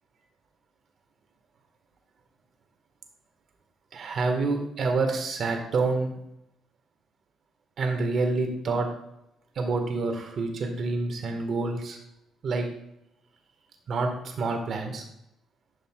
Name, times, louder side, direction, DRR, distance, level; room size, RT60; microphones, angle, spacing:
voice 1, 3.9-6.1 7.8-8.9 9.5-12.0 12.4-12.7 13.9-15.0, right 3 dB, 60° right, 4 dB, 1.5 m, -27 dB
11.0 x 5.4 x 2.3 m, 0.81 s
cardioid pair, 90°, 0 cm